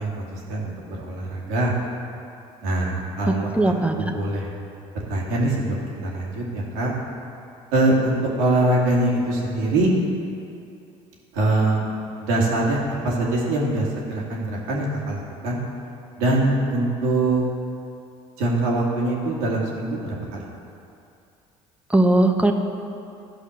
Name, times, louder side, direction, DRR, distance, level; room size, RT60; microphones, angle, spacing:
voice 1, 0.0-1.7 2.6-3.5 4.0-4.5 5.1-6.9 7.7-9.9 11.3-11.8 12.2-15.6 16.2-17.4 18.4-20.4, right 2 dB, 80° right, -3 dB, 2.2 m, -23 dB
voice 2, 3.3-4.1 21.9-22.5, right 2 dB, 10° right, 5 dB, 1.0 m, -19 dB
12.5 x 5.2 x 6.3 m, 2.7 s
hypercardioid pair, 75°, 17 cm